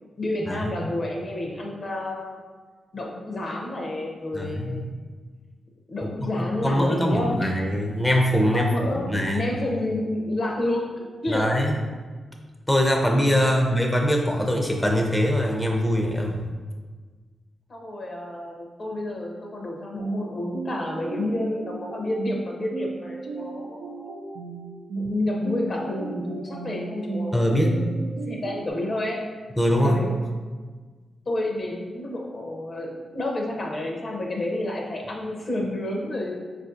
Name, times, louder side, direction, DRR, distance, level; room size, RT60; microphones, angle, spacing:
voice 1, 0.2-2.4 2.9-4.9 5.9-7.8 8.5-11.8 13.3-13.7 17.7-24.1 24.9-28.0 28.3-29.2 29.8-30.3 31.3-36.4, left 1 dB, 55° left, 0 dB, 0.6 m, -30 dB
voice 2, 4.3-4.8 6.2-6.3 6.6-9.4 11.3-11.8 12.7-16.4 27.3-27.7 29.6-30.0, equal, 10° left, 1 dB, 0.5 m, -22 dB
sound 1, 20.0-28.7, right 4 dB, 80° right, 0.4 m, -35 dB
3.8 x 2.5 x 2.5 m, 1.4 s
supercardioid pair, 40°, 0 cm